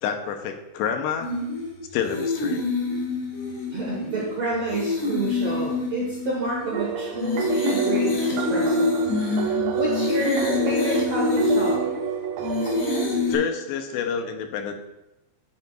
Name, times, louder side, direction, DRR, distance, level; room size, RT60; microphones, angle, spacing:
voice 1, 0.0-1.3 1.9-2.7 13.3-14.8, left 7 dB, 85° left, 6 dB, 2.8 m, -28 dB
sound 1, 1.2-13.4, left 3 dB, 50° left, 2.4 m, -26 dB
voice 2, 3.7-8.9 9.7-11.8, right 1 dB, 65° right, -5 dB, 1.7 m, -29 dB
sound 2, 6.7-13.1, right 8 dB, 90° right, 3.0 m, -29 dB
9.3 x 9.1 x 2.3 m, 0.94 s
omnidirectional pair, 5.0 m